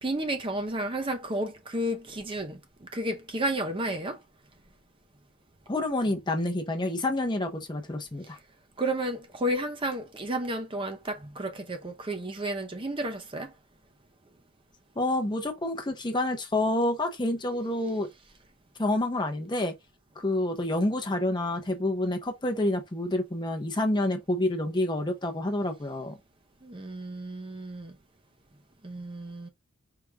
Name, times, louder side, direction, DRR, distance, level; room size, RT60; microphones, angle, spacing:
voice 1, 0.0-4.2 8.8-13.5 26.6-28.0 28.8-29.5, right 1 dB, 25° right, 0.6 m, -32 dB
voice 2, 5.7-8.4 15.0-18.1 18.8-19.7 20.2-26.2, left 1 dB, 20° left, 0.7 m, -28 dB
4.8 x 2.6 x 3.3 m
head